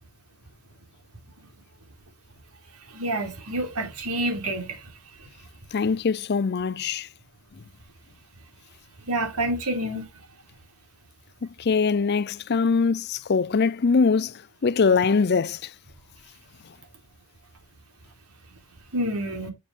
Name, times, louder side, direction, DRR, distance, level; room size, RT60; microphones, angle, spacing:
voice 1, 2.9-4.9 5.2-5.3 9.1-10.1 18.9-19.5, right 1 dB, 90° right, 4.0 m, -28 dB
voice 2, 5.7-7.1 11.6-14.3 14.6-15.6, left 5 dB, 45° left, 0.5 m, -22 dB
8.9 x 7.1 x 3.8 m
head